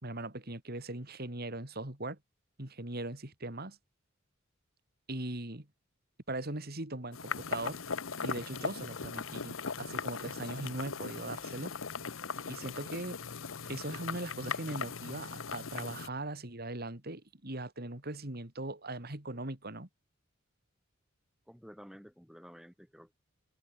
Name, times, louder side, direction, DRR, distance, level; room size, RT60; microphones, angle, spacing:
voice 1, 0.0-2.2 2.6-3.8 5.1-5.7 6.3-7.8 8.2-11.7 12.4-13.2 13.7-19.9, right 2 dB, 50° right, 3.2 m, -40 dB
sound 1, 7.1-16.1, left 5 dB, 85° left, 1.1 m, -39 dB
voice 2, 21.5-23.1, equal, ahead, 2.5 m, -52 dB
head